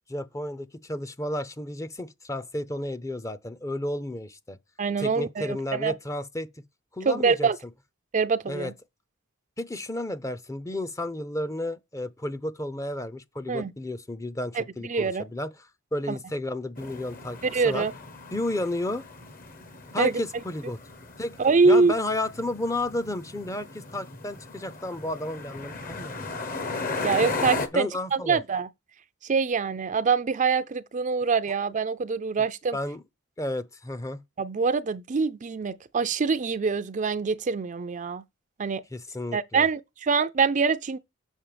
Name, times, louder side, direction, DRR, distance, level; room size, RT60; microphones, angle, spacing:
voice 1, 0.1-4.6 5.0-6.5 6.9-7.5 8.5-8.7 9.6-15.5 15.9-17.4 17.6-17.9 18.3-19.0 19.9-20.8 21.2-21.4 21.7-26.3 27.7-28.4 32.7-33.0 33.4-34.2 38.9-39.7, left 1 dB, 15° left, 0.6 m, -32 dB
voice 2, 4.8-5.9 7.1-7.6 8.1-8.7 13.5-13.7 14.5-15.2 16.1-16.2 17.4-17.9 20.0-20.1 21.4-21.9 27.0-28.7 29.2-32.8 34.4-38.2 38.6-38.8 39.3-41.0, right 5 dB, 40° right, 0.5 m, -24 dB
sound 1, 16.8-27.7, left 3 dB, 45° left, 1.2 m, -36 dB
7.4 x 5.3 x 5.0 m
head